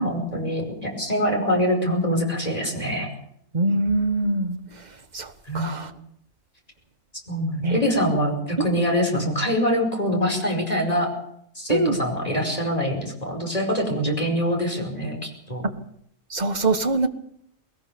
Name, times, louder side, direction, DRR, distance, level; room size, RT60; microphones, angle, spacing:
voice 1, 0.0-3.1 5.5-5.7 7.3-11.1 11.6-15.6, equal, 25° left, 1 dB, 5.3 m, -24 dB
voice 2, 3.5-4.6 5.1-5.9 7.6-7.8 8.6-8.7 11.7-12.0 16.3-17.1, right 2 dB, 30° right, 7 dB, 1.5 m, -23 dB
20.5 x 19.0 x 6.9 m, 0.72 s
omnidirectional pair, 1.6 m